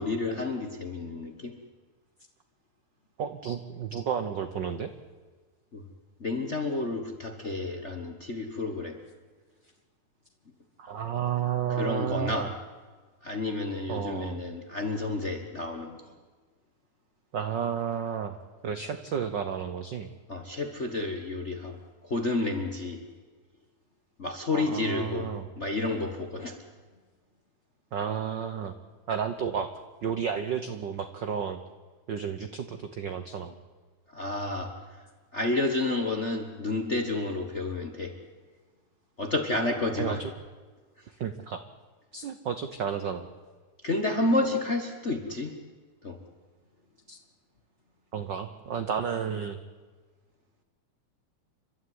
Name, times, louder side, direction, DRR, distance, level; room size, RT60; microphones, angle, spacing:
voice 1, 0.0-1.5 5.7-5.8 6.2-9.0 11.7-12.5 13.2-16.1 20.3-23.0 24.2-26.6 34.1-35.0 35.3-38.2 39.2-40.2 43.8-45.6 46.0-46.2, left 2 dB, 40° left, 5 dB, 1.0 m, -30 dB
voice 2, 3.2-4.9 10.8-12.5 13.9-14.4 17.3-18.4 18.6-20.1 24.5-25.5 27.9-28.7 29.1-29.7 30.0-31.6 32.1-33.5 39.9-40.3 41.1-41.6 42.1-43.3 47.1-47.2 48.1-49.6, right 7 dB, 85° right, 9 dB, 0.9 m, -32 dB
29.5 x 13.0 x 9.5 m, 1.4 s
omnidirectional pair, 3.4 m